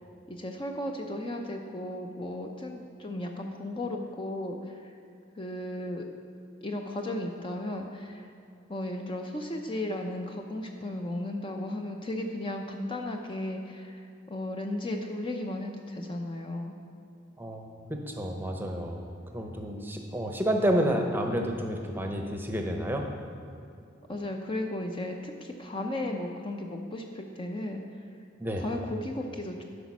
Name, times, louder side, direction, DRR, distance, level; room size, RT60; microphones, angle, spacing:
voice 1, 0.3-4.9 5.4-6.0 6.6-8.3 8.7-14.0 14.3-16.7 24.1-27.8 28.6-29.6, left 1 dB, 25° left, 3 dB, 0.6 m, -35 dB
voice 2, 17.4-23.1 28.4-28.6, equal, 10° right, 3 dB, 0.8 m, -30 dB
12.0 x 5.1 x 6.1 m, 2.5 s
head